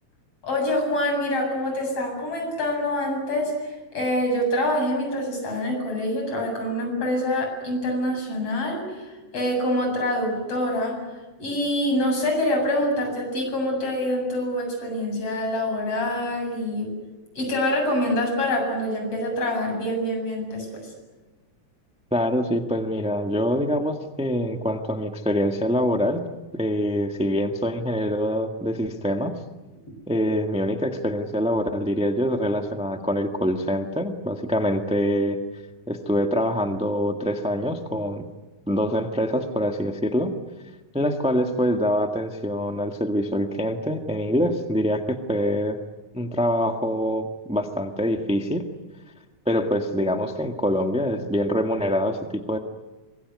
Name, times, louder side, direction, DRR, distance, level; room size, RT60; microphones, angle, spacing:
voice 1, 0.4-11.0 11.4-16.9 17.4-20.7, left 1 dB, 50° left, 3 dB, 8.8 m, -25 dB
voice 2, 22.1-26.2 26.5-29.4 30.1-35.4 35.9-38.2 38.7-40.4 40.9-45.8 46.1-48.7 49.4-52.6, equal, 5° right, 5 dB, 0.5 m, -25 dB
25.0 x 22.5 x 9.7 m, 1.2 s
omnidirectional pair, 3.5 m